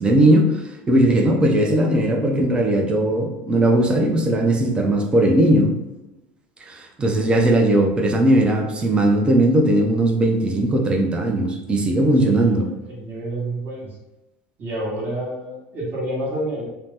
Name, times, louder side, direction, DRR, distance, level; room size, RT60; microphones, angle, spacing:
voice 1, 0.0-5.7 6.7-12.7, right 1 dB, 20° right, 2 dB, 0.5 m, -18 dB
voice 2, 12.3-14.0 14.6-16.7, right 1 dB, 35° right, -4 dB, 1.1 m, -29 dB
2.8 x 2.0 x 3.4 m, 0.99 s
supercardioid pair, 130°, 6 cm